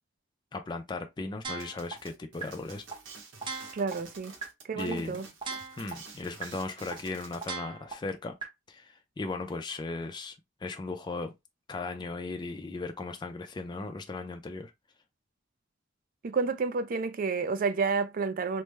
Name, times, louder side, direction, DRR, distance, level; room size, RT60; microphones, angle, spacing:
voice 1, 0.5-2.8 4.7-5.2 5.7-8.4 8.7-10.4 10.6-11.3 11.7-14.7, left 3 dB, 25° left, 0.4 m, -37 dB
sound 1, 1.4-1.9 2.4-2.5 2.9-3.0 3.4-3.9 4.4-4.5 4.9-5.0 5.4-5.9 6.4-6.5 6.9-7.0 7.4-7.9 8.4-8.5, right 5 dB, 25° right, 0.8 m, -37 dB
sound 2, 1.6-7.5, right 4 dB, 80° right, 0.9 m, -49 dB
voice 2, 3.7-4.4 4.6-5.3 16.2-18.6, right 4 dB, 45° right, 0.4 m, -30 dB
3.3 x 2.0 x 3.1 m
head